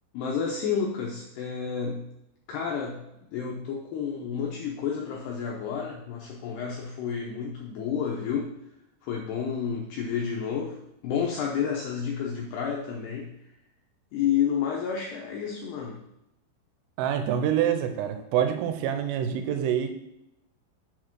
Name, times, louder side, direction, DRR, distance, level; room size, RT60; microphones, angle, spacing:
voice 1, 0.1-2.1 2.5-8.5 9.0-10.8 11.0-13.4 14.1-16.0, left 7 dB, 80° left, -1 dB, 2.3 m, -30 dB
voice 2, 17.0-19.9, right 9 dB, 85° right, 7 dB, 3.3 m, -26 dB
6.9 x 4.9 x 5.9 m, 0.84 s
omnidirectional pair, 5.7 m